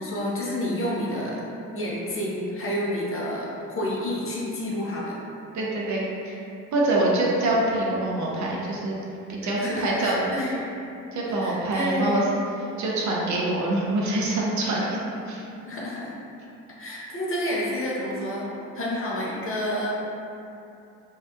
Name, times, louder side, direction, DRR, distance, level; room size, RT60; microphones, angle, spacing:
voice 1, 0.0-1.4 1.7-5.2 7.0-7.3 9.4-10.6 11.4-12.4 15.7-16.1 16.8-18.5 18.7-19.9, left 1 dB, 35° left, -5 dB, 0.7 m, -29 dB
voice 2, 5.5-6.4 6.7-9.0 9.3-10.3 11.1-12.3 12.8-15.0 15.3-15.4, right 2 dB, 50° right, -4 dB, 0.6 m, -25 dB
2.7 x 2.2 x 2.2 m, 2.7 s
hypercardioid pair, 50°, 36 cm